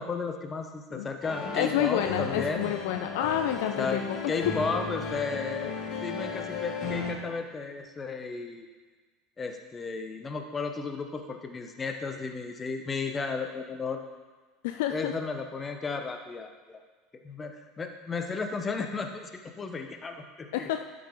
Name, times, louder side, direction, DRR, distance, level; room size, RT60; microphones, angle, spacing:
voice 1, 0.0-2.7 3.8-4.0 4.3-5.7 6.0-8.7 9.4-14.0 14.9-16.8 17.2-19.3 19.6-20.7, left 4 dB, 25° left, 5 dB, 0.9 m, -34 dB
sound 1, 1.2-7.1, left 4 dB, 45° left, 1.9 m, -34 dB
voice 2, 1.5-4.0 14.6-15.1 20.5-20.8, left 11 dB, 60° left, 6 dB, 0.4 m, -29 dB
11.5 x 5.2 x 3.8 m, 1.4 s
figure-of-eight pair, 70°, 0 cm